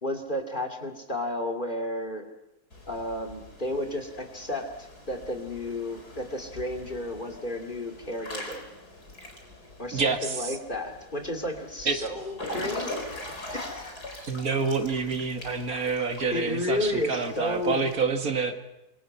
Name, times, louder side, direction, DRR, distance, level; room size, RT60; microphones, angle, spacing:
voice 1, 0.0-2.3 2.9-8.6 9.8-14.0 16.3-17.8, left 1 dB, 30° left, 3 dB, 2.8 m, -32 dB
Water / Splash splatter / Drip, 2.7-18.0, left 1 dB, 90° left, 5.0 m, -42 dB
voice 2, 9.9-10.5 11.9-12.1 14.2-18.7, right 4 dB, 65° right, 7 dB, 2.2 m, -28 dB
27.0 x 24.0 x 5.6 m, 0.92 s
omnidirectional pair, 1.6 m